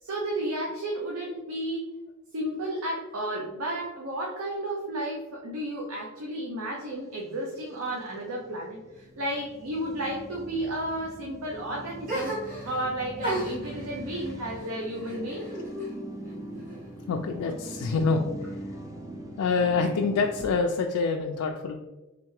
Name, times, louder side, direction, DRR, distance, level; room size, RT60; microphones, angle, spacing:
voice 1, 0.0-1.9 2.3-15.4, right 1 dB, 70° right, -1 dB, 0.6 m, -33 dB
sound 1, 7.3-20.6, right 1 dB, 15° right, 0.4 m, -42 dB
sound 2, 12.1-12.9 13.2-15.9 16.2-17.1, equal, 40° right, 1.3 m, -35 dB
voice 2, 17.1-18.6 19.4-21.8, left 4 dB, 75° left, 2 dB, 0.3 m, -26 dB
3.6 x 3.4 x 3.1 m, 1.1 s
head